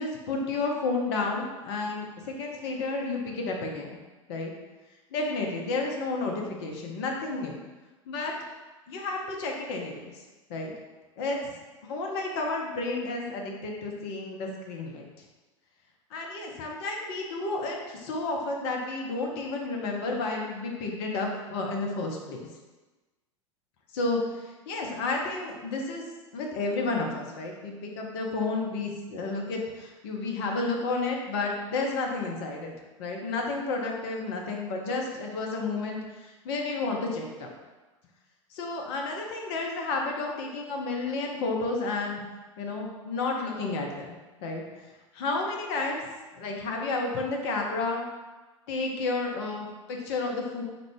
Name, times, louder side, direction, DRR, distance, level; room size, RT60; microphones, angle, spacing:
voice 1, 0.0-4.0 4.3-4.5 5.1-7.6 8.1-8.3 8.9-10.0 10.5-10.7 11.2-11.4 11.9-15.1 16.1-22.4 23.9-26.0 26.3-32.7 33.0-37.5 38.5-42.2 42.6-44.1 44.4-44.6 45.1-46.1 46.4-48.1 48.7-50.6, left 3 dB, 50° left, 1 dB, 0.6 m, -31 dB
3.7 x 2.2 x 3.4 m, 1.2 s
figure-of-eight pair, 90°, 17 cm